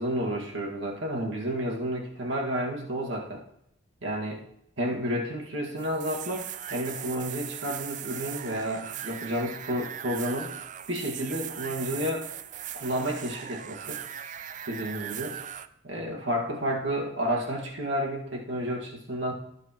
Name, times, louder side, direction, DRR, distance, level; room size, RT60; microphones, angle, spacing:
voice 1, 0.0-3.4 4.0-4.4 4.8-10.6 10.9-12.3 12.7-14.0 14.7-15.4 15.8-19.3, equal, 70° right, -1 dB, 1.9 m, -31 dB
sound 1, 5.8-15.7, right 10 dB, 40° right, 0.4 m, -39 dB
17.5 x 7.4 x 3.0 m, 0.74 s
head